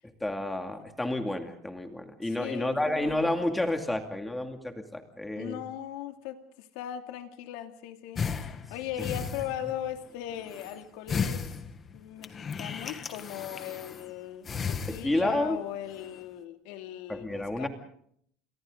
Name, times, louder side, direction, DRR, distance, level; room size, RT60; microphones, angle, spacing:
voice 1, 0.2-5.6 9.0-9.1 14.9-15.6 17.1-17.7, left 1 dB, 5° left, 5 dB, 2.4 m, -30 dB
voice 2, 2.2-3.3 5.4-11.5 11.9-17.7, left 11 dB, 75° left, 6 dB, 2.6 m, -39 dB
sound 1, 8.1-9.9 10.3-10.8 11.1-14.1 14.4-15.5 15.8-16.2, left 6 dB, 25° left, 1.5 m, -35 dB
29.5 x 27.0 x 3.9 m, 0.65 s
cardioid pair, 165°, 0 cm